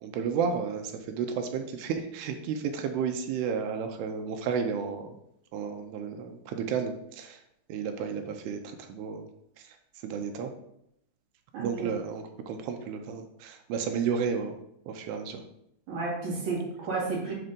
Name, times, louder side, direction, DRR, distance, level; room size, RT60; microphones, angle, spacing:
voice 1, 0.0-5.2 5.5-7.4 7.7-9.3 10.0-10.5 11.6-14.6 14.9-15.4, right 6 dB, 80° right, 5 dB, 2.4 m, -32 dB
voice 2, 11.5-12.0 15.9-17.3, right 3 dB, 50° right, -5 dB, 3.4 m, -32 dB
7.8 x 3.3 x 5.2 m, 0.77 s
omnidirectional pair, 5.1 m